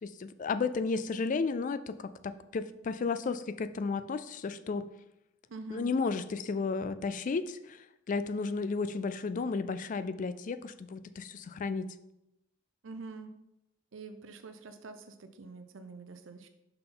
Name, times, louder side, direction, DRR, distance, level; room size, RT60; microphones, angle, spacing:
voice 1, 0.0-4.9 5.7-11.9, left 4 dB, 45° left, 13 dB, 0.3 m, -33 dB
voice 2, 5.5-5.9 12.8-13.3 13.9-16.5, right 3 dB, 90° right, 8 dB, 0.6 m, -46 dB
5.8 x 5.6 x 3.8 m, 0.87 s
head